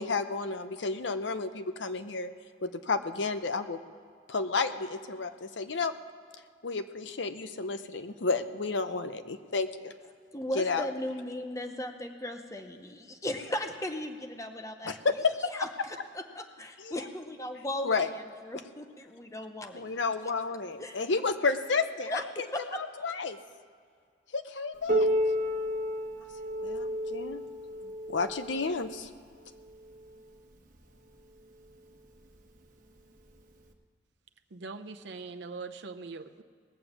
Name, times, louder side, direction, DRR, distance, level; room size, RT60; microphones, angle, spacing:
voice 1, 0.0-2.3 2.6-3.8 4.3-5.9 6.6-9.9 10.6-10.9 14.9-15.3 16.8-16.9 17.8-18.1 19.7-22.2 23.0-23.4 24.3-25.1 26.6-27.4 28.1-29.1, left 4 dB, 70° left, 10 dB, 0.7 m, -31 dB
voice 2, 10.3-14.9 15.4-19.9 20.8-21.0 22.1-23.1, left 1 dB, 15° left, 6 dB, 0.7 m, -37 dB
Piano, 24.9-30.2 31.1-31.2 31.7-31.8 32.6-32.7 33.7-33.8, equal, 45° right, 1.2 m, -32 dB
voice 3, 34.5-36.4, right 4 dB, 65° right, 8 dB, 0.7 m, -42 dB
19.5 x 7.0 x 7.2 m, 2.1 s
head